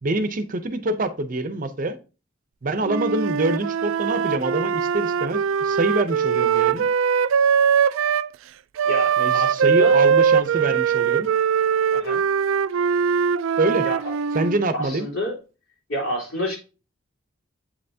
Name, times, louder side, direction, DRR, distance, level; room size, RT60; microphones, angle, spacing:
voice 1, 0.0-2.0 2.6-6.9 9.2-11.3 13.6-13.9 14.3-15.1, right 2 dB, 45° right, 0.6 m, -25 dB
Wind instrument woodwind instrument, 2.8-8.3 8.8-14.6, right 7 dB, 90° right, 0.3 m, -21 dB
voice 2, 8.8-10.0 11.9-12.2 13.8-14.1 14.7-15.4 15.9-16.6, left 1 dB, 85° left, 3.4 m, -28 dB
8.2 x 5.5 x 2.7 m
head